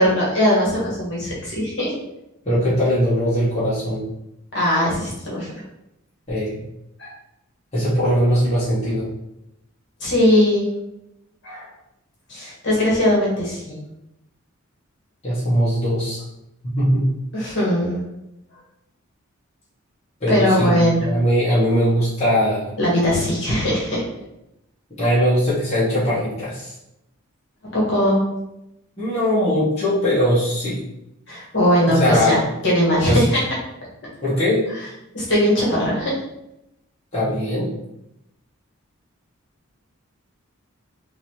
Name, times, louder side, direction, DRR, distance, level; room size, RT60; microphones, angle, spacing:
voice 1, 0.0-1.9 4.5-5.5 7.0-7.1 10.0-10.7 11.4-11.7 12.3-13.7 17.3-18.0 20.3-21.1 22.8-24.0 27.7-28.2 31.3-33.4 35.1-36.1, equal, 55° left, -6 dB, 1.3 m, -19 dB
voice 2, 2.4-4.0 6.3-6.6 7.7-9.1 15.2-16.2 16.6-17.1 20.2-22.7 25.0-26.7 29.0-30.8 31.9-32.4 33.0-33.2 34.2-34.7 37.1-37.7, equal, 30° left, -11 dB, 1.2 m, -20 dB
3.9 x 2.8 x 3.1 m, 0.86 s
head